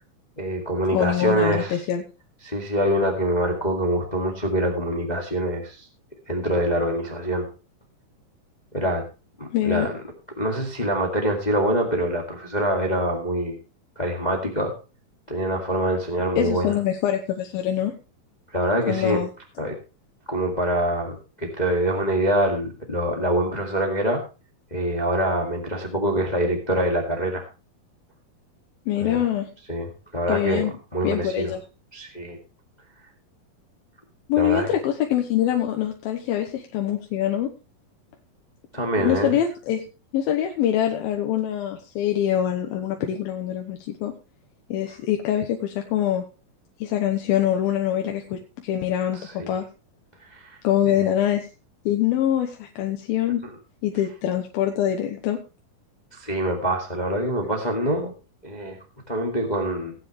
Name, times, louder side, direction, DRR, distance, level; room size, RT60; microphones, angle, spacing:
voice 1, 0.4-1.8 2.4-5.9 6.3-7.5 8.7-9.0 9.4-10.0 10.4-13.6 13.9-14.7 15.3-16.8 18.5-19.2 19.6-19.7 20.3-24.2 24.7-27.4 29.0-29.3 29.7-30.6 30.9-31.5 31.9-32.4 34.3-34.7 38.7-39.3 49.1-49.5 50.3-50.6 50.8-51.0 53.4-53.5 56.1-58.1 58.4-58.8 59.1-59.9, right 1 dB, 20° left, 2 dB, 1.4 m, -25 dB
voice 2, 0.9-2.0 9.5-9.9 16.4-17.9 18.9-19.3 28.9-29.5 30.3-30.7 31.0-31.6 34.3-37.5 39.0-39.8 40.1-44.1 44.7-46.3 46.8-49.7 50.6-51.5 51.9-53.4 53.8-55.4, left 11 dB, 90° left, 3 dB, 2.9 m, -24 dB
17.5 x 9.5 x 3.2 m, 0.31 s
omnidirectional pair, 4.2 m